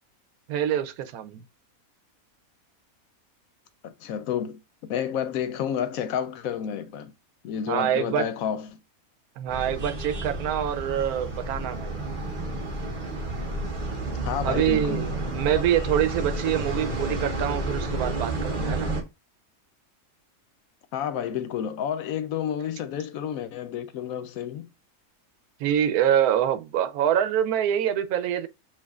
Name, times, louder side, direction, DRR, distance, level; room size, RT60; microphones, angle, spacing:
voice 1, 0.5-1.4 7.7-8.3 9.4-12.1 14.4-18.9 25.6-28.5, right 10 dB, 85° right, 1.1 m, -25 dB
voice 2, 3.8-7.1 7.4-8.8 14.3-15.0 15.5-15.6 20.9-24.7, left 9 dB, 75° left, 1.0 m, -30 dB
sound 1, 9.5-19.0, right 2 dB, 40° right, 1.2 m, -30 dB
7.2 x 2.5 x 2.3 m
omnidirectional pair, 1.5 m